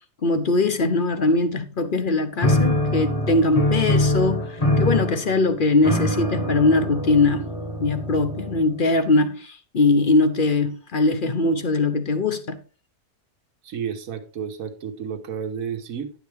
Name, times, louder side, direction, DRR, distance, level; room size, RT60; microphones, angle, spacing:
voice 1, 0.2-7.5 7.8-12.6, left 3 dB, 45° left, 0.7 m, -21 dB
sound 1, 2.4-8.9, left 1 dB, 25° left, 1.0 m, -24 dB
voice 2, 13.6-16.1, right 7 dB, 60° right, 1.5 m, -31 dB
10.5 x 7.3 x 3.4 m
omnidirectional pair, 1.7 m